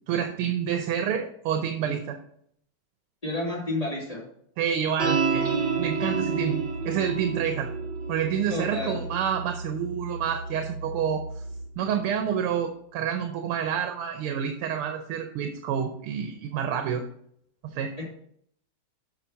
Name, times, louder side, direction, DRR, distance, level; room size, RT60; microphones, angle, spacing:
voice 1, 0.1-2.2 4.6-7.7 8.1-11.4 11.8-17.0 17.6-18.0, right 8 dB, 85° right, 5 dB, 1.7 m, -28 dB
voice 2, 3.2-4.3 8.5-9.0 18.0-18.1, left 2 dB, 15° left, -5 dB, 2.6 m, -30 dB
sound 1, 5.0-11.7, right 5 dB, 55° right, 2.4 m, -30 dB
7.4 x 5.7 x 5.5 m, 0.68 s
omnidirectional pair, 2.4 m